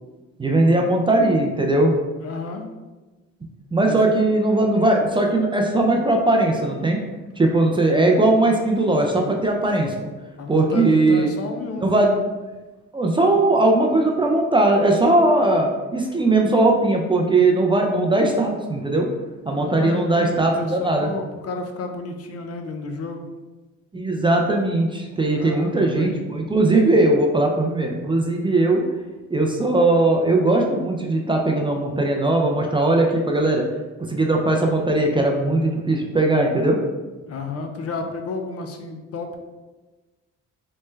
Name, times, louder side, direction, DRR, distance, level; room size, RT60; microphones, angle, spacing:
voice 1, 0.4-1.9 3.7-7.0 7.4-9.9 10.5-11.3 11.8-12.2 12.9-19.1 19.4-21.1 23.9-28.8 29.3-33.6 34.1-36.8, right 2 dB, 15° right, 1 dB, 0.4 m, -19 dB
voice 2, 2.2-2.7 3.8-4.0 10.4-12.0 19.5-23.3 25.4-26.2 37.2-39.4, left 3 dB, 55° left, 5 dB, 0.5 m, -32 dB
3.1 x 2.1 x 3.2 m, 1.2 s
cardioid pair, 90°, 30 cm